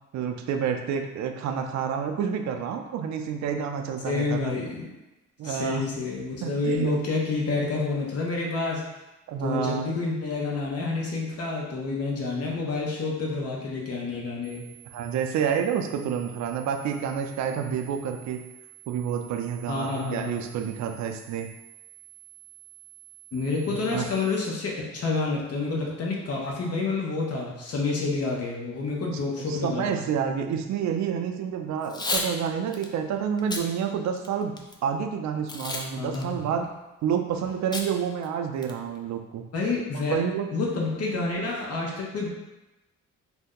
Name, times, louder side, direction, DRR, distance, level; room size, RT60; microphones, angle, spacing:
voice 1, 0.1-4.4 5.4-5.8 6.4-6.9 9.3-9.9 14.9-18.4 18.9-21.5 23.9-24.0 29.1-29.2 29.5-34.5 34.8-36.7 37.0-39.4 40.1-40.4, right 7 dB, 65° right, 5 dB, 0.5 m, -29 dB
voice 2, 4.1-4.9 5.4-8.8 9.4-14.6 17.6-17.7 19.7-20.5 23.3-30.1 36.0-36.4 39.5-40.2 40.5-42.3, left 3 dB, 55° left, -2 dB, 0.9 m, -28 dB
sound 1, 14.4-24.4, right 15 dB, 15° right, 0.9 m, -50 dB
Packing tape duct tape / Tearing, 31.8-32.3 32.7-32.9 33.4-33.6 34.2-34.7 35.5-35.9 36.1-36.2 37.7-37.9 38.2-38.3 38.6-39.0, left 2 dB, 15° left, 0.3 m, -30 dB
2.7 x 2.1 x 3.6 m, 1.0 s
cardioid pair, 90°, 30 cm